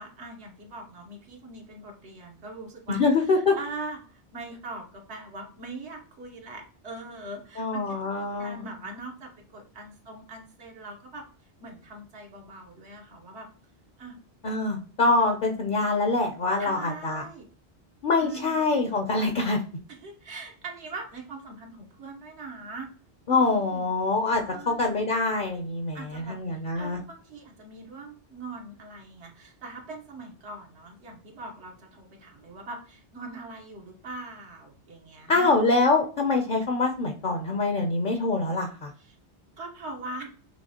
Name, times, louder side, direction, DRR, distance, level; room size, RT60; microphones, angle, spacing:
voice 1, 0.0-11.2 11.6-13.5 14.0-14.2 16.6-17.5 18.2-18.6 20.0-22.9 23.2-23.9 24.4-25.0 25.9-35.5 39.0-39.2 39.6-40.3, right 2 dB, 85° right, 1 dB, 1.2 m, -42 dB
voice 2, 2.9-3.6 7.6-8.6 14.4-17.2 18.0-19.6 23.3-27.0 35.3-38.9, left 3 dB, 55° left, 4 dB, 0.6 m, -25 dB
6.2 x 3.1 x 2.8 m, 0.40 s
omnidirectional pair, 1.1 m